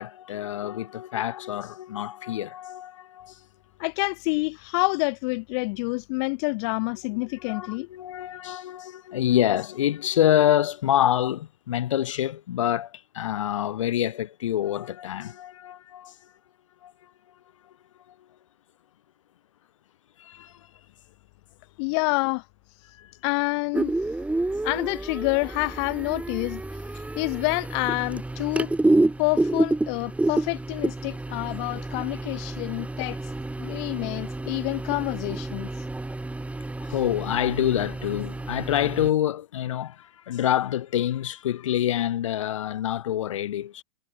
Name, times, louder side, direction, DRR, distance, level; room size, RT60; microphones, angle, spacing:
voice 1, 0.0-3.5 7.3-16.3 16.8-17.1 17.6-17.7 18.1-18.2 20.2-20.7 22.9-23.1 36.8-43.8, left 11 dB, 75° left, 5.9 m, -27 dB
voice 2, 3.8-7.9 21.8-22.4 23.2-23.9 24.6-28.7 29.2-33.3 33.6-35.7, left 31 dB, 60° left, 1.5 m, -28 dB
sound 1, 23.7-39.1, right 2 dB, 10° right, 4.6 m, -29 dB
hypercardioid pair, 90°, 16 cm